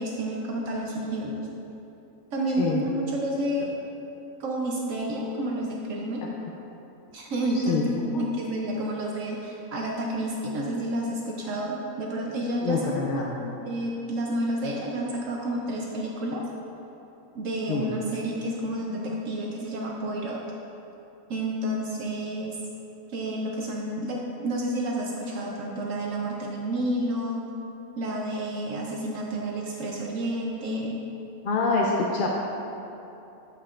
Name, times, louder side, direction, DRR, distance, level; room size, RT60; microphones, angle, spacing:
voice 1, 0.0-1.5 2.3-3.8 4.4-6.2 7.1-16.4 17.3-20.4 21.3-22.6 23.1-27.4 28.0-31.0, right 1 dB, 70° right, -1 dB, 1.0 m, -30 dB
voice 2, 7.5-7.9 8.1-8.2 12.6-13.3 17.7-17.9 31.4-32.3, left 4 dB, 60° left, -2 dB, 0.5 m, -26 dB
8.1 x 7.6 x 2.5 m, 2.9 s
omnidirectional pair, 1.5 m